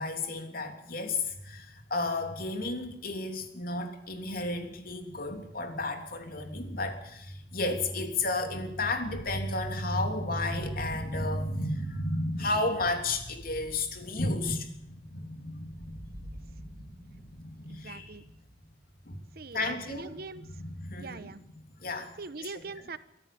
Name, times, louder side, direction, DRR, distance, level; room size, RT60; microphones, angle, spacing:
voice 1, 0.0-18.1 19.0-19.2 19.5-20.1 20.4-21.3 21.8-22.1, left 2 dB, 50° left, 5 dB, 3.2 m, -33 dB
sound 1, 13.3-15.2 15.6-18.8, equal, 85° right, 3.2 m, -50 dB
voice 2, 17.7-18.2 19.3-20.4 21.0-21.4 22.2-23.0, right 3 dB, 55° right, 13 dB, 1.1 m, -42 dB
24.5 x 14.0 x 8.7 m, 0.77 s
head